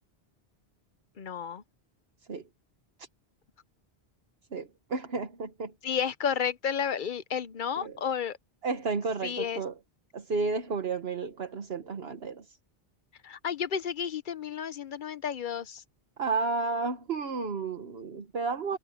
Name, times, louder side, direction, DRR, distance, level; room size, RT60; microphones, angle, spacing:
voice 1, 1.2-1.6 5.8-8.4 9.2-9.6 13.2-15.8, left 7 dB, 55° left, 0.8 m, -32 dB
voice 2, 4.5-5.7 7.8-7.9 8.6-9.7 10.1-12.4 16.2-18.8, right 4 dB, 70° right, 1.4 m, -32 dB
omnidirectional pair, 1.1 m